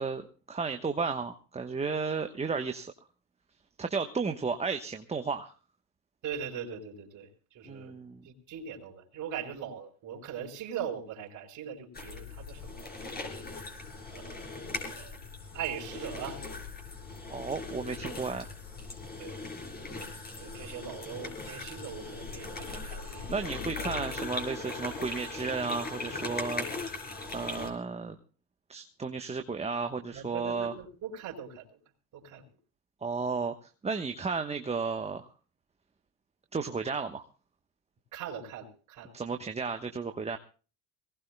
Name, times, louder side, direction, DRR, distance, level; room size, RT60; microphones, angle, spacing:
voice 1, 0.0-2.9 3.8-5.5 7.7-8.2 17.3-18.5 23.3-26.7 27.3-28.2 28.7-30.8 33.0-33.5 33.8-35.3 36.5-37.2 39.1-40.4, right 4 dB, 15° right, 6 dB, 1.1 m, -33 dB
voice 2, 6.2-7.3 7.5-7.9 8.2-12.9 14.1-15.1 15.5-16.4 19.2-19.4 20.4-23.5 30.1-31.6 32.1-32.4 38.1-39.1, right 8 dB, 50° right, -3 dB, 4.4 m, -40 dB
sound 1, 11.9-27.7, left 3 dB, 25° left, 5.2 m, -39 dB
24.0 x 18.5 x 2.2 m, 0.36 s
supercardioid pair, 90°, 38 cm